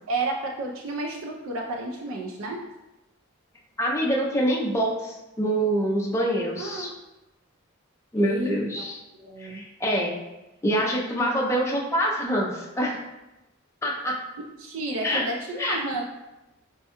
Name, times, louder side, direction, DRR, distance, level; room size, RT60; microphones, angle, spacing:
voice 1, 0.1-2.6 6.6-6.9 8.1-8.8 9.1-9.6 14.6-16.0, right 2 dB, 75° right, 1 dB, 0.4 m, -31 dB
voice 2, 3.8-6.9 8.1-9.0 9.4-10.1 10.6-13.0 13.8-14.2 15.0-15.3 15.6-15.8, equal, 15° left, -3 dB, 0.4 m, -25 dB
4.5 x 2.2 x 2.8 m, 0.99 s
head